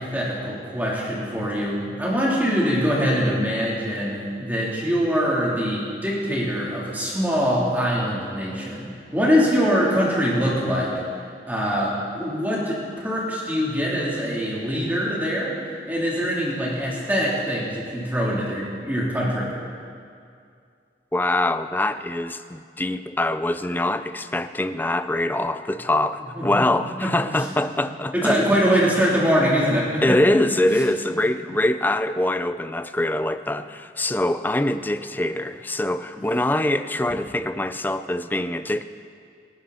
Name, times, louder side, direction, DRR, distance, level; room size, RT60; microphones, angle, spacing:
voice 1, 0.0-8.8 9.1-11.0 11.5-15.5 15.9-19.5 26.3-26.6 27.0-27.1 28.1-30.2 30.6-30.8 31.1-31.2, equal, 10° right, -6 dB, 3.4 m, -23 dB
voice 2, 21.1-28.4 30.0-38.8, left 1 dB, 10° left, 11 dB, 0.4 m, -24 dB
27.0 x 11.5 x 4.3 m, 2.3 s
head